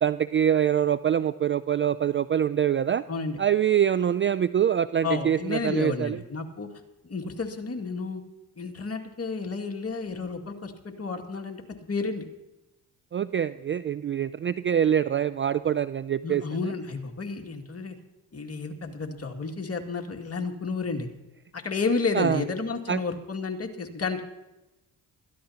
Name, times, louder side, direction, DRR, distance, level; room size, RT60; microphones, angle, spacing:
voice 1, 0.0-3.0 3.4-6.2 13.1-16.4 22.1-22.4 22.9-23.0, right 9 dB, 30° right, 15 dB, 0.4 m, -24 dB
voice 2, 5.0-6.7 7.0-8.2 8.6-11.6 11.9-12.2 16.2-17.9 18.3-21.1 21.5-24.2, left 4 dB, 35° left, 2 dB, 2.2 m, -31 dB
21.0 x 14.0 x 2.9 m, 1.0 s
supercardioid pair, 55°, 41 cm